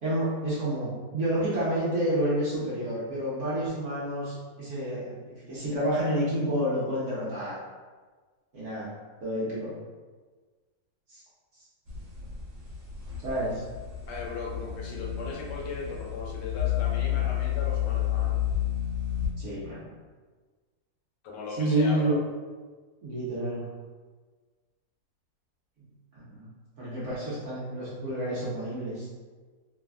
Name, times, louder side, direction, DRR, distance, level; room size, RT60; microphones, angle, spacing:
voice 1, 0.0-7.6 8.5-8.9 9.2-9.7 11.1-11.2 13.2-13.6 19.4-19.8 21.5-22.2 23.0-23.7 25.8-26.5 26.8-29.1, right 1 dB, 55° right, -9 dB, 1.0 m, -29 dB
sound 1, 11.9-19.3, left 11 dB, 90° right, 1.3 m, -30 dB
voice 2, 14.1-18.4 21.2-22.2, left 4 dB, 80° left, -2 dB, 1.2 m, -37 dB
3.3 x 2.1 x 2.2 m, 1.4 s
omnidirectional pair, 2.0 m